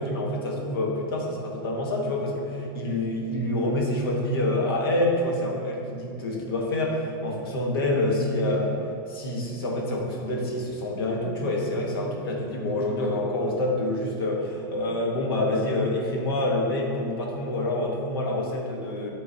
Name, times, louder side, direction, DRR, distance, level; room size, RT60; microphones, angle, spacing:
voice 1, 0.0-8.8 9.1-19.1, left 1 dB, 90° left, -1 dB, 1.2 m, -27 dB
9.2 x 3.8 x 2.8 m, 2.5 s
supercardioid pair, 170°, 12 cm